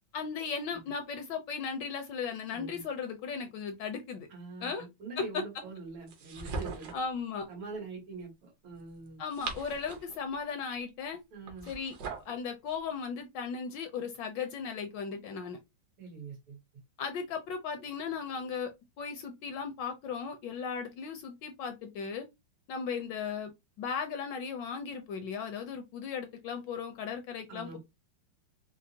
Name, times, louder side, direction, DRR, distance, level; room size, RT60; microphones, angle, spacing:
voice 1, 0.1-4.3 4.6-4.9 5.2-5.4 6.9-7.5 9.2-11.2 11.7-11.9 12.3-15.6 17.0-18.7 19.0-22.3 22.7-23.5 23.8-27.8, left 6 dB, 75° left, 1.1 m, -36 dB
voice 2, 4.3-7.0 7.5-9.2 11.3-11.7 16.0-16.6 27.5-27.8, right 4 dB, 80° right, 2.3 m, -44 dB
sound 1, 6.1-7.1 9.1-10.2 11.4-12.3, right 4 dB, 60° right, 1.2 m, -40 dB
4.6 x 2.0 x 2.7 m
omnidirectional pair, 2.3 m